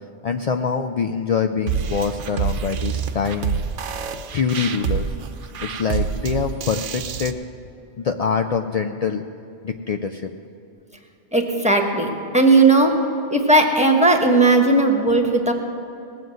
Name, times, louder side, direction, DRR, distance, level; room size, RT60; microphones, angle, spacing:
voice 1, 0.2-4.0 4.3-5.1 5.6-7.4 8.0-9.2 9.6-10.3, left 6 dB, 65° left, 5 dB, 0.3 m, -24 dB
sound 1, 1.7-7.3, right 7 dB, 85° right, 1.1 m, -27 dB
voice 2, 11.3-13.0 13.3-15.5, right 2 dB, 5° right, 3 dB, 1.2 m, -16 dB
18.5 x 7.7 x 7.7 m, 2.7 s
omnidirectional pair, 1.2 m